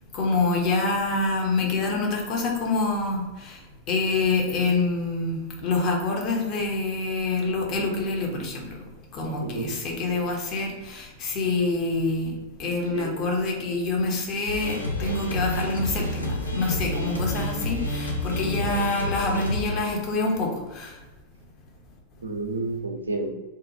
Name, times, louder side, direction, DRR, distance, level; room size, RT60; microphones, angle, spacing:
voice 1, 0.1-3.6 3.9-8.7 9.1-12.3 12.6-20.9, left 3 dB, 35° left, 0 dB, 0.7 m, -26 dB
voice 2, 9.4-9.7 12.9-13.2 18.4-18.7 22.2-23.3, right 2 dB, 75° right, 3 dB, 0.4 m, -31 dB
sound 1, 14.5-19.6, left 1 dB, 85° left, 0.4 m, -29 dB
2.7 x 2.2 x 2.6 m, 1.1 s
figure-of-eight pair, 90°, 0 cm